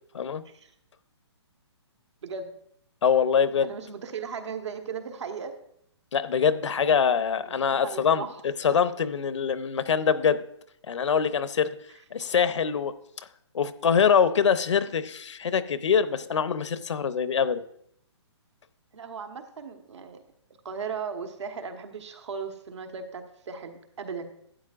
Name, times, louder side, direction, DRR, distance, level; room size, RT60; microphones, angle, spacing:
voice 1, 2.2-2.5 3.6-5.5 7.4-8.4 18.9-20.2 20.6-24.3, right 6 dB, 75° right, 5 dB, 1.3 m, -37 dB
voice 2, 3.0-3.7 6.1-8.3 8.6-10.4 10.9-11.7 12.1-12.9 13.5-17.6, left 7 dB, 80° left, 13 dB, 0.8 m, -24 dB
12.5 x 9.0 x 2.5 m, 0.72 s
hypercardioid pair, 160°, 15 cm